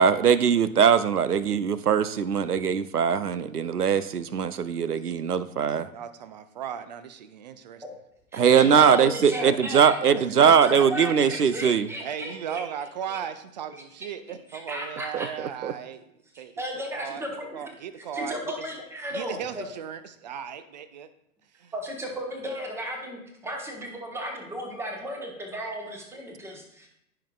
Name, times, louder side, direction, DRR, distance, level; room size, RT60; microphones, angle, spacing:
voice 1, 0.0-5.9 8.3-11.9 15.1-15.3 15.6-15.7, right 7 dB, 85° right, 15 dB, 0.6 m, -21 dB
voice 2, 5.9-7.8 10.5-10.6 12.0-16.1 16.4-16.6 17.0-17.2 17.5-18.5 19.1-21.1 21.6-21.7, right 8 dB, 30° right, 13 dB, 0.4 m, -37 dB
voice 3, 8.3-10.2 10.6-12.6 13.1-13.2 13.7-13.8 14.5-15.3 15.7-15.8 16.3-17.7 18.1-19.7 21.7-26.9, equal, 5° right, 2 dB, 1.1 m, -35 dB
14.5 x 5.7 x 2.3 m, 0.79 s
figure-of-eight pair, 105°, 45 cm